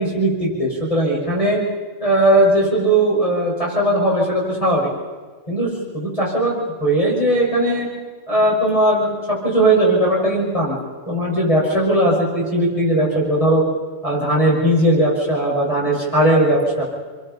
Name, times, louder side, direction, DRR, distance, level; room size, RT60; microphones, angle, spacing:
voice 1, 0.0-1.6 2.0-4.9 5.5-7.9 8.3-13.6 14.0-16.8, right 1 dB, 25° left, -4 dB, 6.3 m, -18 dB
29.0 x 22.0 x 5.6 m, 1.4 s
omnidirectional pair, 1.3 m